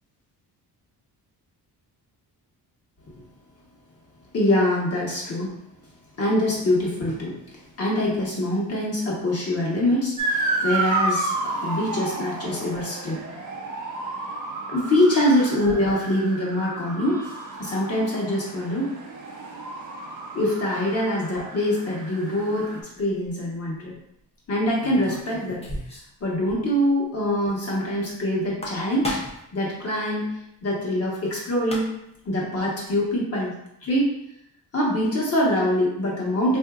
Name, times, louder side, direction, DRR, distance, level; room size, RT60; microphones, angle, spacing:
voice 1, 4.3-5.5 6.2-13.2 14.7-17.2 17.6-18.9 20.3-24.0 24.5-25.6 26.2-29.2 29.5-30.3 30.6-31.9 32.2-34.1 34.7-36.6, left 1 dB, 40° left, -4 dB, 1.2 m, -24 dB
Motor vehicle (road) / Siren, 10.2-22.8, right 3 dB, 50° right, 0.6 m, -31 dB
sound 1, 23.0-23.3 24.8-26.2 26.5-26.6 26.9-27.0 28.4-29.5 31.3-31.4 31.6-32.2, left 1 dB, 15° left, 0.6 m, -34 dB
3.8 x 2.7 x 2.4 m, 0.79 s
cardioid pair, 130°, 39 cm